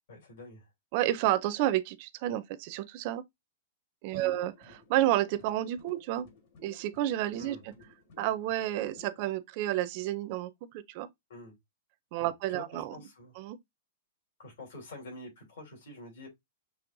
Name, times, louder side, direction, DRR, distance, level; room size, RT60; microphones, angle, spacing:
voice 1, 0.1-0.7 4.1-4.3 7.4-7.6 11.3-11.6 12.2-13.3 14.4-16.3, left 2 dB, 70° left, 3.0 m, -47 dB
voice 2, 0.9-3.2 4.0-4.5 4.9-6.3 6.6-7.7 8.2-11.1 12.1-12.9 13.4-13.6, right 13 dB, 35° right, 0.4 m, -30 dB
sound 1, 4.1-9.2, left 5 dB, 50° left, 1.4 m, -56 dB
6.1 x 3.2 x 2.5 m
supercardioid pair, 175°, 0 cm